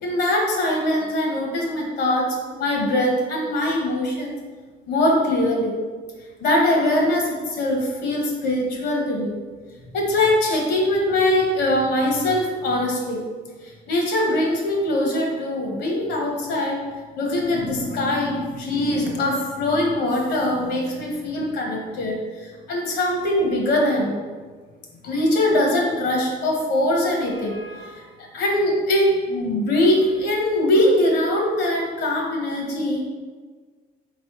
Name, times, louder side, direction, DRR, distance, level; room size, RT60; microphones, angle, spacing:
voice 1, 0.0-4.4 4.9-5.7 6.4-9.3 9.9-13.2 13.9-16.8 17.2-24.2 25.0-28.0 28.3-33.0, left 1 dB, 75° left, 0 dB, 1.0 m, -22 dB
4.2 x 3.1 x 3.0 m, 1.4 s
cardioid pair, 110°, 17 cm